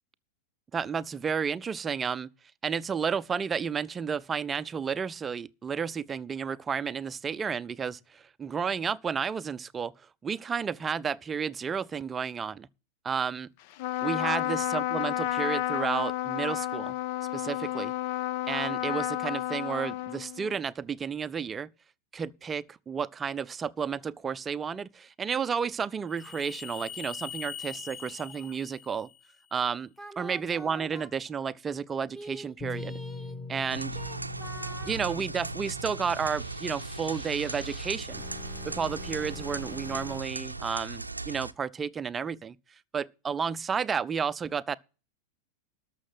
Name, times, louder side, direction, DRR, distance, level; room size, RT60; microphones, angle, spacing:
voice 1, 0.7-2.3 2.6-9.9 10.2-12.7 13.0-13.5 14.0-16.9 17.3-17.9 18.5-21.7 22.1-29.1 29.5-29.9 30.2-33.0 33.5-34.0 34.8-38.2 38.6-42.6 42.9-44.8, right 6 dB, 20° right, 0.5 m, -32 dB
Trumpet, 13.7-20.6, left 14 dB, 45° left, 0.5 m, -31 dB
sound 1, 26.1-29.4 30.0-31.1 32.1-40.2, left 4 dB, 10° left, 1.5 m, -43 dB
sound 2, 33.7-41.5, right 2 dB, 85° right, 0.6 m, -38 dB
12.5 x 6.3 x 7.6 m
figure-of-eight pair, 90°, 0 cm